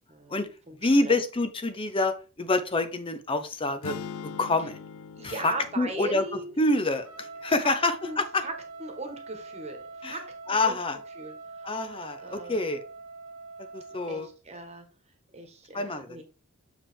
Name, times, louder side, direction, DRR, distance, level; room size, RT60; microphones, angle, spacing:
voice 1, 0.1-1.2 5.2-6.6 7.6-7.7 8.1-8.5 8.8-10.8 11.1-11.8 12.2-12.7 14.1-14.8 15.3-16.2, right 2 dB, 30° right, 4 dB, 1.4 m, -39 dB
voice 2, 0.8-3.9 4.4-4.8 5.2-6.2 6.6-8.4 10.0-10.2 10.5-11.0 11.6-12.8 13.7-14.3 15.7-16.2, left 2 dB, 25° left, 10 dB, 0.7 m, -27 dB
sound 1, 3.8-8.0, left 6 dB, 80° left, 0.4 m, -43 dB
Trumpet, 7.0-14.3, right 3 dB, 85° right, 0.8 m, -44 dB
7.0 x 4.9 x 3.5 m, 0.32 s
head